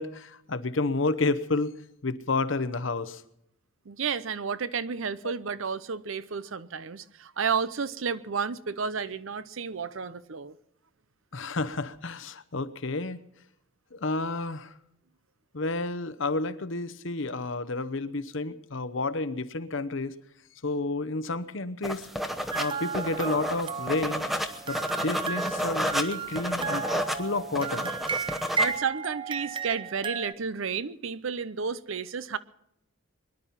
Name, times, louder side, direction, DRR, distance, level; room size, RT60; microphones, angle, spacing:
voice 1, 0.0-1.7 2.0-3.2 5.2-5.3 11.3-13.2 13.9-14.7 15.5-20.1 20.6-22.1 22.5-24.2 24.7-26.8 27.1-27.9, left 3 dB, 65° left, 0.9 m, -30 dB
voice 2, 3.9-10.5 28.6-32.4, right 6 dB, 70° right, 0.7 m, -31 dB
sound 1, 21.8-28.8, equal, ahead, 0.9 m, -31 dB
sound 2, 22.5-30.3, right 5 dB, 25° right, 0.5 m, -34 dB
23.0 x 11.0 x 5.7 m
head